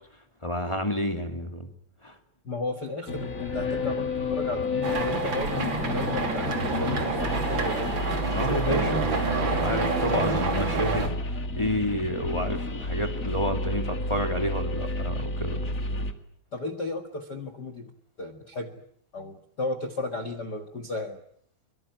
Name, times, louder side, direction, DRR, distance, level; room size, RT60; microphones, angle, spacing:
voice 1, 0.4-1.7 2.0-2.1 8.3-9.1 9.5-15.7, equal, 10° left, 4 dB, 1.7 m, -30 dB
voice 2, 2.4-7.9 8.6-9.2 10.1-10.4 16.5-17.9 18.2-18.7 19.1-21.2, left 2 dB, 60° left, 9 dB, 1.0 m, -34 dB
sound 1, 3.1-16.1, left 2 dB, 35° left, 1.3 m, -31 dB
sound 2, 4.8-11.1, right 4 dB, 30° right, 3.2 m, -28 dB
24.5 x 23.0 x 9.3 m, 0.64 s
omnidirectional pair, 4.9 m